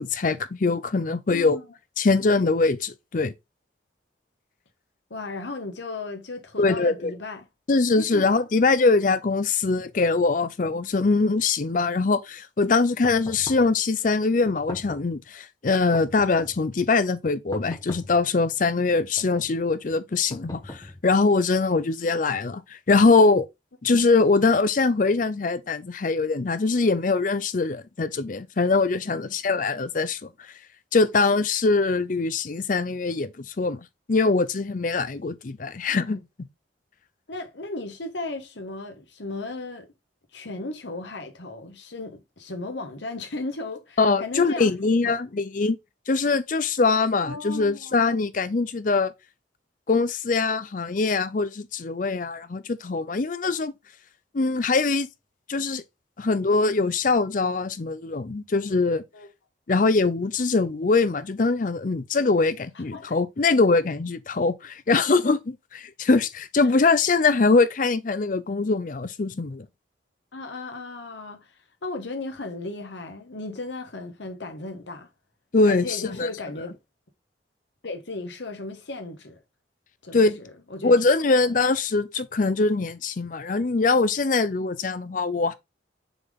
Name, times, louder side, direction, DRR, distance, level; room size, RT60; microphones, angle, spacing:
voice 1, 0.0-1.6 2.0-3.3 6.6-7.1 7.7-23.5 23.8-30.3 30.9-33.8 34.1-36.2 44.0-45.8 46.1-49.1 49.9-53.7 54.3-55.1 55.5-55.8 56.2-59.0 59.7-69.7 75.5-76.3 80.1-80.4 80.8-85.5, left 3 dB, 45° left, 0.5 m, -22 dB
voice 2, 1.3-1.6 5.1-7.4 8.0-8.3 18.9-19.0 29.0-29.3 37.3-39.9 40.3-44.7 45.0-45.2 47.2-48.1 59.1-59.3 62.7-63.2 66.6-66.7 70.3-75.1 75.6-76.8 77.8-79.4 80.0-80.9, left 2 dB, 70° left, 1.3 m, -35 dB
sound 1, 13.0-13.8 14.5-15.2 15.9-16.7 17.5-18.3 19.0-19.6 20.3-21.2, left 1 dB, 20° left, 0.9 m, -40 dB
6.9 x 3.7 x 3.6 m
head